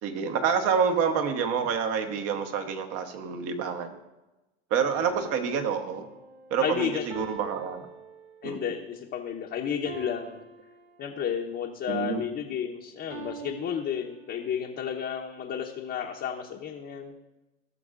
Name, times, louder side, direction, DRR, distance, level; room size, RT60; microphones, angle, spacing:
voice 1, 0.0-4.0 4.7-6.1 6.5-7.8 8.4-8.7 11.9-12.2, right 6 dB, 50° right, 7 dB, 1.2 m, -28 dB
sound 1, 4.9-8.7 9.9-11.4 13.1-14.7, right 3 dB, 80° right, 1.1 m, -45 dB
voice 2, 6.6-7.2 8.4-10.4 11.0-17.1, left 8 dB, 35° left, 0 dB, 0.9 m, -32 dB
17.0 x 6.3 x 2.5 m, 1.0 s
hypercardioid pair, 95°, 31 cm